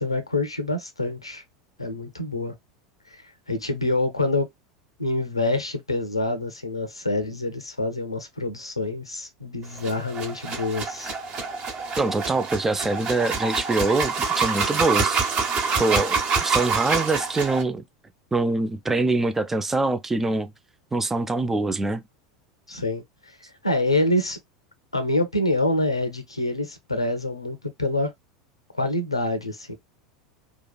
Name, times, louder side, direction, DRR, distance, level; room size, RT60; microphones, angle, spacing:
voice 1, 0.0-1.4 1.8-2.5 3.5-4.5 5.0-11.1 22.7-23.3 23.6-24.4 24.9-28.1 28.7-29.7, left 2 dB, 85° left, 0.7 m, -26 dB
sound 1, 9.8-17.6, right 5 dB, 35° right, 1.0 m, -26 dB
voice 2, 12.0-15.5 15.8-17.8 18.3-20.5 20.9-22.0, right 2 dB, 10° right, 0.4 m, -24 dB
2.9 x 2.4 x 2.2 m
figure-of-eight pair, 80°, 3 cm